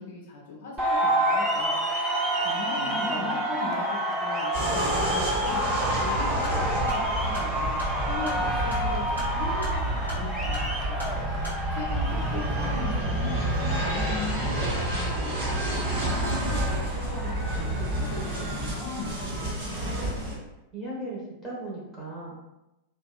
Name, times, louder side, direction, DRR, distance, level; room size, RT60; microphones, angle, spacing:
voice 1, 0.0-1.8 2.4-5.6 6.0-11.1 11.5-15.6 15.9-19.4, left 3 dB, 55° left, -3 dB, 0.4 m, -38 dB
sound 1, 0.8-18.5, right 1 dB, 15° right, 0.5 m, -30 dB
voice 2, 2.6-3.3 12.1-12.2 20.7-22.3, right 1 dB, 5° left, -6 dB, 1.0 m, -38 dB
sound 2, 4.5-20.3, right 1 dB, 45° right, 1.2 m, -29 dB
sound 3, 6.4-11.6, left 1 dB, 75° right, 1.1 m, -41 dB
2.6 x 2.2 x 2.2 m, 0.96 s
figure-of-eight pair, 90°, 0 cm